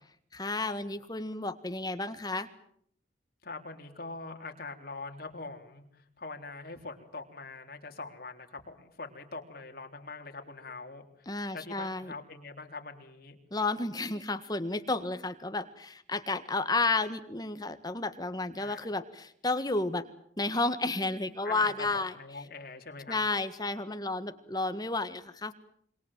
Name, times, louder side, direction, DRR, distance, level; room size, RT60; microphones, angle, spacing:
voice 1, 0.3-2.5 11.3-12.1 13.5-20.0 20.4-22.1 23.1-25.5, left 3 dB, 20° left, 10 dB, 1.7 m, -32 dB
voice 2, 3.4-13.4 18.6-18.8 21.4-23.2, left 3 dB, 55° left, 4 dB, 3.9 m, -43 dB
26.5 x 24.0 x 7.5 m, 0.66 s
head